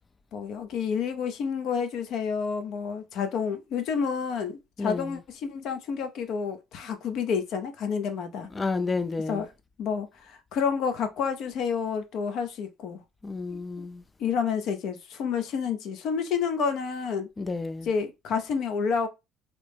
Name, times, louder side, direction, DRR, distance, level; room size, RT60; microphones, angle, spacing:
voice 1, 0.3-8.5 9.3-9.5 9.8-13.0 13.5-13.8 14.2-17.3 17.8-19.1, left 6 dB, 65° left, 0.6 m, -29 dB
voice 2, 4.8-5.2 8.5-9.5 13.2-14.0 17.4-17.9, left 3 dB, 25° left, 0.3 m, -31 dB
2.9 x 2.1 x 3.3 m
supercardioid pair, 80°, 0 cm